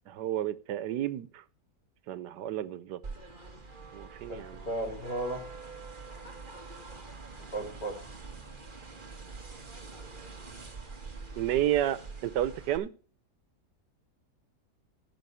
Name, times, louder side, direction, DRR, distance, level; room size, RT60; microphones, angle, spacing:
voice 1, 0.1-1.4 2.1-3.0 3.9-4.6 11.4-12.9, right 12 dB, 90° right, 16 dB, 1.4 m, -31 dB
sound 1, 3.0-12.8, right 4 dB, 30° right, 1.8 m, -45 dB
voice 2, 4.3-5.4 7.5-7.9, right 1 dB, 85° left, -1 dB, 5.2 m, -34 dB
15.0 x 6.0 x 5.7 m, 0.39 s
omnidirectional pair, 1.8 m